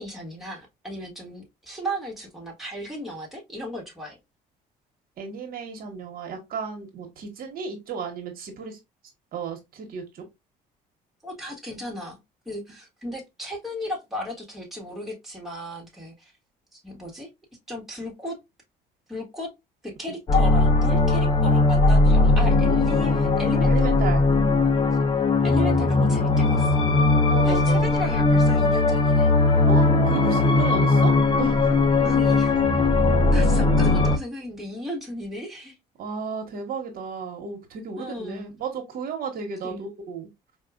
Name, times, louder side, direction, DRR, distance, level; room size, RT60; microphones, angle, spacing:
voice 1, 0.0-4.2 11.2-12.2 12.4-16.3 16.7-17.3 17.7-18.4 19.1-19.5 19.8-23.9 25.4-26.9 27.4-29.7 32.0-32.9 33.3-35.7 38.0-38.5 39.6-39.9, equal, ahead, 1.3 m, -35 dB
voice 2, 5.2-8.8 9.3-10.2 23.7-24.2 27.3-27.9 29.7-31.7 36.0-40.3, right 5 dB, 60° right, 1.0 m, -33 dB
sound 1, 20.3-28.6 29.7-29.8, left 7 dB, 65° left, 1.2 m, -37 dB
sound 2, 20.3-34.2, left 3 dB, 30° left, 0.6 m, -19 dB
4.4 x 2.3 x 2.3 m
cardioid pair, 110°, 17 cm